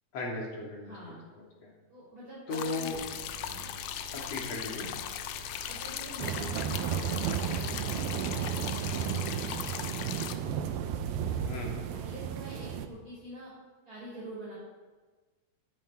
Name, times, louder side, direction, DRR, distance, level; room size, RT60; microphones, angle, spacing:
voice 1, 0.1-0.9 1.6-1.7 2.5-3.0 4.1-4.9 11.5-11.8, left 2 dB, 45° left, -2 dB, 3.5 m, -36 dB
voice 2, 0.8-1.2 1.9-3.7 5.5-10.7 11.0-11.3 11.9-13.5 13.8-14.5, right 1 dB, 25° right, -8 dB, 5.0 m, -46 dB
sound 1, 2.5-10.4, left 11 dB, 80° left, 1.8 m, -39 dB
sound 2, 2.9-9.8, right 6 dB, 60° right, 3.8 m, -49 dB
sound 3, 6.2-12.9, right 8 dB, 80° right, 2.6 m, -33 dB
17.0 x 10.0 x 4.3 m, 1.3 s
omnidirectional pair, 4.3 m